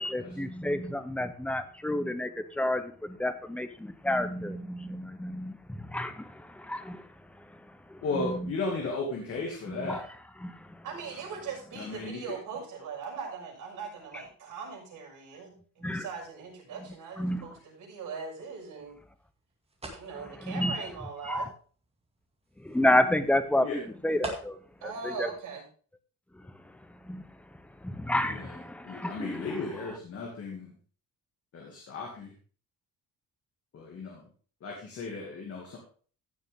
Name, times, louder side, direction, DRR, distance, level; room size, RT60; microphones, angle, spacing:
voice 1, 0.0-7.1 7.4-7.5 7.9-8.5 9.7-10.0 10.4-10.8 15.8-16.1 17.2-17.4 20.4-20.8 21.3-21.5 22.6-23.7 24.0-24.6 25.0-25.3 26.3-26.5 27.0-27.4 27.8-29.5, left 1 dB, 5° left, 9 dB, 0.7 m, -30 dB
voice 2, 8.0-10.0 11.7-12.2 23.6-23.8 28.3-28.5 28.8-30.7 31.5-32.3 33.7-34.3 34.6-35.8, left 3 dB, 45° left, -1 dB, 2.4 m, -35 dB
voice 3, 10.8-19.0 19.9-21.5 24.8-25.6, right 5 dB, 70° right, 0 dB, 6.4 m, -40 dB
sound 1, 18.4-24.8, right 1 dB, 20° right, 2.1 m, -46 dB
15.5 x 6.8 x 3.6 m, 0.41 s
cardioid pair, 175°, 32 cm